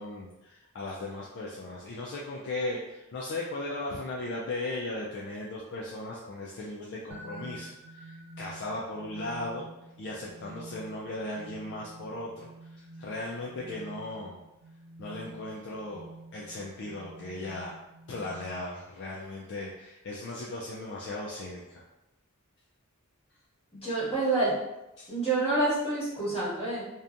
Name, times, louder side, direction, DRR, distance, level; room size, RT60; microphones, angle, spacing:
voice 1, 0.0-9.7 10.0-14.4 15.0-17.8 18.1-21.8 25.0-25.1, left 2 dB, 50° left, -4 dB, 0.3 m, -37 dB
sound 1, 7.1-18.8, right 2 dB, 50° right, 0.4 m, -48 dB
voice 2, 23.7-24.5 25.1-26.8, right 2 dB, 25° left, -10 dB, 1.3 m, -27 dB
2.7 x 2.2 x 2.4 m, 0.97 s
head